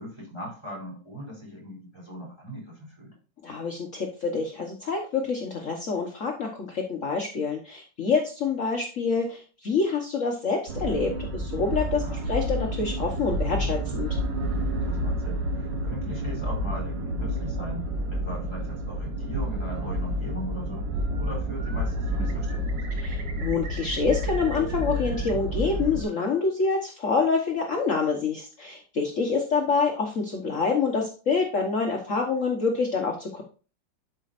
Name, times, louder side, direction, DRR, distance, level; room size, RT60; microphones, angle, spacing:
voice 1, 0.0-3.2 12.0-12.2 14.8-20.9 21.2-23.0, equal, 15° right, -4 dB, 3.8 m, -39 dB
voice 2, 3.4-14.1 23.0-33.4, left 4 dB, 50° left, 1 dB, 1.4 m, -27 dB
sound 1, 10.7-26.0, equal, 75° right, 1.6 m, -29 dB
Bird, 20.8-21.3 21.6-25.3 25.6-26.4, right 5 dB, 60° right, 1.8 m, -45 dB
12.0 x 5.3 x 2.5 m, 0.36 s
omnidirectional pair, 2.0 m